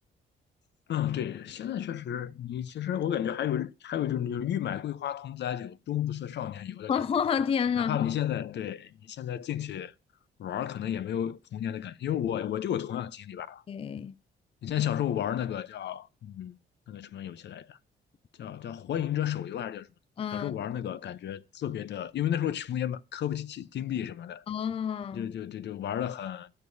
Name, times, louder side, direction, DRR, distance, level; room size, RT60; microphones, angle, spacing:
voice 1, 0.9-6.9 7.8-9.9 10.4-13.6 14.6-16.6 16.9-17.8 18.4-19.9 20.3-24.4 25.1-26.5, left 10 dB, 60° left, 0.7 m, -32 dB
voice 2, 6.9-8.1 13.7-14.1 20.2-20.5 24.5-25.3, left 7 dB, 30° left, 0.4 m, -29 dB
15.5 x 6.8 x 2.7 m
cardioid pair, 90°, 20 cm